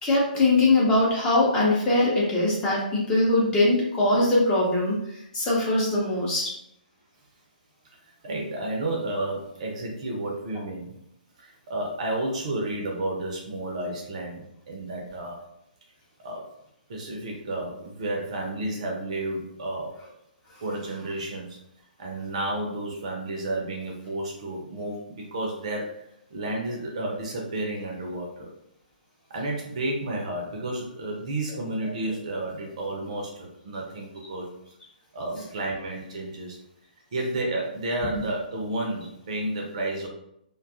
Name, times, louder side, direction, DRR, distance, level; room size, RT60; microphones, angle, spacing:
voice 1, 0.0-6.5, left 2 dB, 15° left, -5 dB, 0.7 m, -22 dB
voice 2, 8.0-11.0 11.4-15.4 16.2-16.4 16.9-19.9 20.6-21.6 22.0-26.0 26.3-28.5 29.3-34.5 35.1-36.6 37.1-40.1, right 1 dB, 45° right, 0 dB, 0.6 m, -31 dB
2.5 x 2.3 x 2.5 m, 0.76 s
figure-of-eight pair, 125°, 5 cm